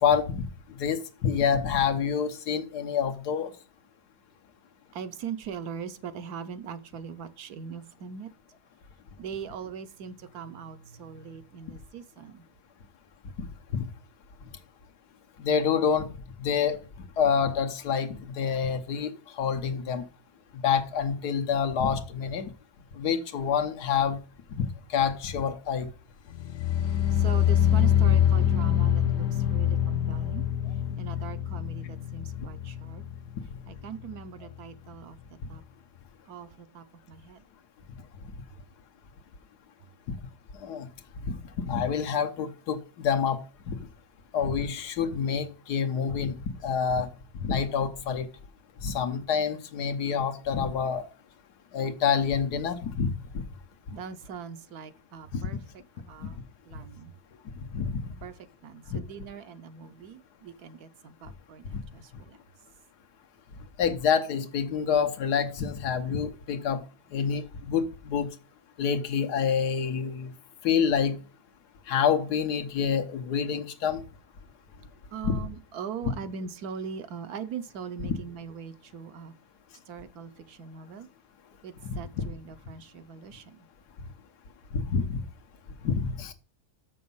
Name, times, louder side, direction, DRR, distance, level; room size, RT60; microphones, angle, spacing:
voice 1, 0.0-3.5 13.4-13.9 15.4-16.1 16.4-16.8 17.2-20.0 20.6-22.5 22.9-24.2 24.6-25.9 32.4-32.5 40.6-40.9 41.3-43.8 44.3-46.3 46.6-47.1 47.4-48.3 48.8-51.0 51.7-53.4 55.3-55.4 56.2-56.3 57.7-58.0 58.9-59.0 61.6-61.8 63.8-66.8 67.1-68.3 68.8-70.3 70.6-71.2 71.9-74.0 75.2-75.3 78.0-78.1 81.9-82.3 84.7-85.2 85.8-86.3, left 7 dB, 85° left, 1.5 m, -27 dB
voice 2, 4.9-8.3 9.2-12.4 27.1-30.4 31.0-33.0 33.7-35.6 36.3-37.4 53.9-55.6 56.1-56.4 56.6-57.1 58.2-58.4 58.6-62.4 75.1-79.3 79.9-81.1 81.6-83.7, right 7 dB, 75° right, 1.3 m, -41 dB
sound 1, 26.3-33.4 33.7-34.2 34.5-34.6, left 10 dB, 65° left, 0.9 m, -25 dB
6.9 x 6.4 x 5.4 m
omnidirectional pair, 1.7 m